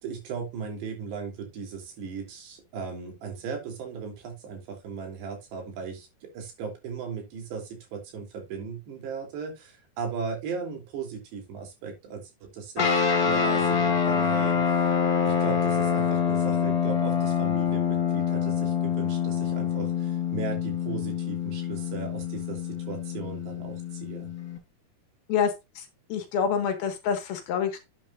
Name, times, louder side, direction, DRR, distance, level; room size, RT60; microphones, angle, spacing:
voice 1, 0.0-14.8 15.3-24.3, right 5 dB, 90° right, 2 dB, 5.4 m, -37 dB
sound 1, 12.8-24.6, left 7 dB, 50° left, 1.0 m, -26 dB
voice 2, 25.3-25.8 26.1-27.8, left 7 dB, 70° left, 6 dB, 3.4 m, -27 dB
11.0 x 8.7 x 2.6 m, 0.23 s
omnidirectional pair, 4.8 m